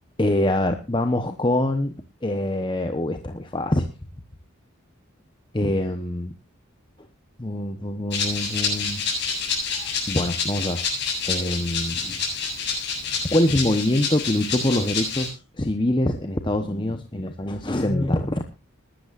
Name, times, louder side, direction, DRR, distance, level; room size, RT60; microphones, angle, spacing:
voice 1, 0.2-1.9 2.2-3.9 5.5-6.3 7.4-9.0 9.7-10.8 11.2-12.2 13.3-18.5, left 1 dB, 20° left, 7 dB, 0.9 m, -24 dB
Rattle (instrument), 8.1-15.3, left 5 dB, 50° left, 7.5 m, -28 dB
21.0 x 12.5 x 2.5 m, 0.29 s
head